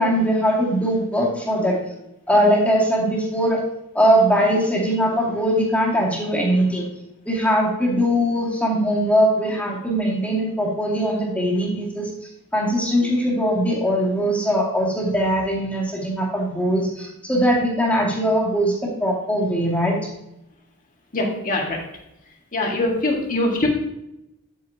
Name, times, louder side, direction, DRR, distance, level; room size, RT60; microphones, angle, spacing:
voice 1, 0.0-1.8 2.3-3.6 3.9-6.9 7.3-12.1 12.5-20.1, equal, 5° left, -4 dB, 2.3 m, -21 dB
voice 2, 21.1-21.9 22.5-23.7, left 2 dB, 40° left, 0 dB, 1.8 m, -23 dB
9.1 x 8.5 x 2.8 m, 0.86 s
head